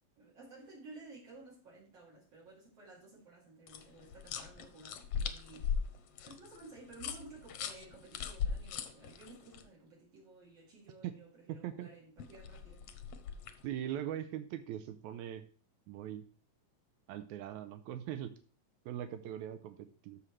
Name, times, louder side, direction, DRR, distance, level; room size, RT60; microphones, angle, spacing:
voice 1, 0.2-5.9 6.2-12.8, right 3 dB, 55° right, -5 dB, 3.7 m, -55 dB
sound 1, 3.7-9.6 12.2-13.7, left 6 dB, 70° left, 1.5 m, -39 dB
voice 2, 11.5-11.9 13.6-15.4 15.9-16.2 17.1-18.3 18.9-20.2, right 11 dB, 90° right, 10 dB, 2.0 m, -41 dB
14.0 x 5.7 x 3.2 m, 0.40 s
omnidirectional pair, 3.3 m